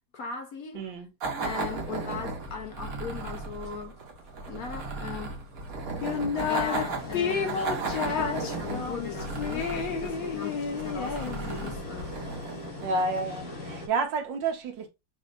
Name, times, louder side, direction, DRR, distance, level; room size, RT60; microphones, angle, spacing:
voice 1, 0.1-0.8 1.4-4.0 4.4-5.4 6.2-12.3, left 6 dB, 60° left, 1.2 m, -39 dB
voice 2, 0.7-1.1 12.8-14.9, right 3 dB, 80° right, 1.7 m, -30 dB
sound 1, 1.2-13.4, right 4 dB, 55° right, 1.5 m, -36 dB
sound 2, 1.7-3.0 3.7-4.2 4.8-5.4 6.0-13.9, left 2 dB, 40° left, 2.6 m, -41 dB
sound 3, 6.0-6.8 7.1-11.8, left 7 dB, 75° left, 1.8 m, -31 dB
7.3 x 2.8 x 2.6 m
omnidirectional pair, 2.0 m